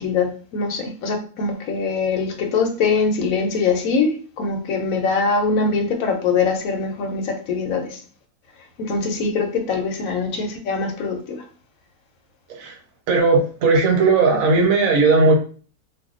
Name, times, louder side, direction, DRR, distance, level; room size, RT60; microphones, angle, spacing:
voice 1, 0.0-8.0 8.8-11.4, left 4 dB, 70° left, 4 dB, 1.0 m, -23 dB
voice 2, 13.1-15.4, right 3 dB, 65° right, 2 dB, 1.2 m, -16 dB
2.6 x 2.2 x 3.6 m, 0.41 s
omnidirectional pair, 1.6 m